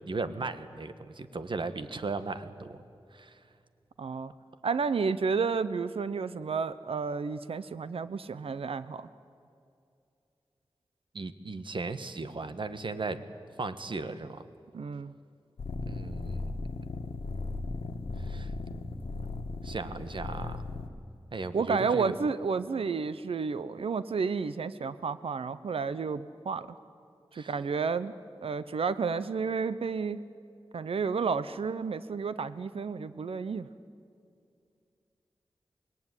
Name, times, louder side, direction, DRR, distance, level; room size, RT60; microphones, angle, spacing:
voice 1, 0.1-2.8 3.1-3.4 11.1-13.2 13.6-14.4 15.8-16.5 18.3-18.5 19.6-20.6 21.3-22.2 27.3-27.5, right 3 dB, 60° right, 11 dB, 1.3 m, -36 dB
voice 2, 4.0-4.3 4.6-9.1 14.7-15.1 21.5-26.7 27.4-28.1 28.4-30.2 30.7-33.7, right 5 dB, 90° right, 14 dB, 0.7 m, -31 dB
sound 1, 15.6-20.9, left 3 dB, 90° left, 1.5 m, -37 dB
26.0 x 20.5 x 9.8 m, 2.5 s
wide cardioid pair, 95°, 9 cm